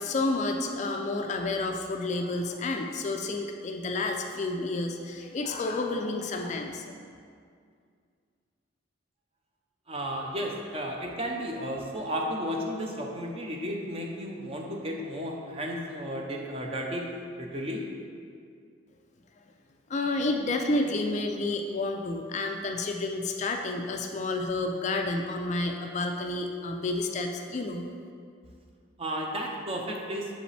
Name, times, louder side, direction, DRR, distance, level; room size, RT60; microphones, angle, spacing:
voice 1, 0.0-6.9 19.9-27.9, left 2 dB, 35° left, 3 dB, 0.3 m, -30 dB
voice 2, 9.9-17.1 17.4-17.8 29.0-30.3, equal, 30° right, 0 dB, 0.6 m, -33 dB
6.8 x 5.1 x 3.3 m, 2.2 s
head